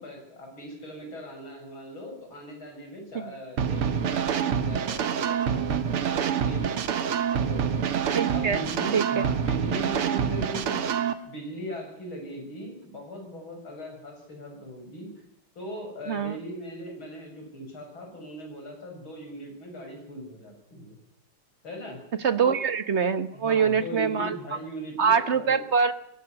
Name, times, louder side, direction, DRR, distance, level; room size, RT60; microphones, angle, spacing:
voice 1, 0.0-7.9 8.3-10.8 11.3-15.1 15.6-21.0 21.6-22.0 22.4-22.6 23.3-25.6, equal, 65° left, 2 dB, 7.6 m, -39 dB
sound 1, 3.6-11.1, right 8 dB, 85° right, 2.3 m, -26 dB
voice 2, 8.1-8.6 8.9-9.0 16.1-16.4 22.2-24.4 25.0-25.9, right 6 dB, 45° right, 12 dB, 1.0 m, -24 dB
21.0 x 16.0 x 9.8 m, 0.78 s
omnidirectional pair, 2.4 m